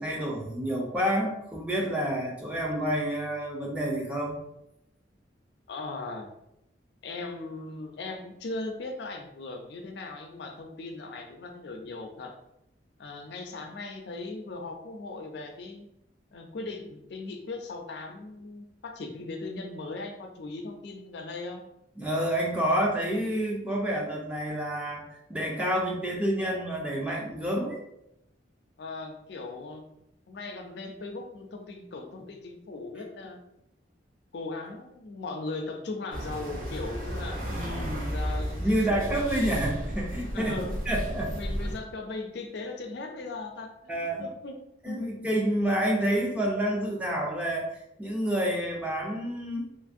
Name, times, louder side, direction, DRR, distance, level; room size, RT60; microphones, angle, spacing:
voice 1, 0.0-4.4 22.0-27.8 37.5-38.1 38.6-40.6 40.9-41.3 43.9-44.3 44.8-49.7, right 1 dB, 5° right, -1 dB, 0.4 m, -29 dB
voice 2, 5.7-6.3 7.0-12.4 13.0-15.9 16.3-21.6 28.8-29.8 30.3-33.4 34.3-37.4 38.0-38.6 38.9-39.0 40.3-40.8 41.3-44.6 44.9-45.3, left 3 dB, 65° left, 4 dB, 0.4 m, -38 dB
sound 1, 36.1-41.8, equal, 50° right, 0.8 m, -33 dB
2.8 x 2.5 x 2.4 m, 0.81 s
head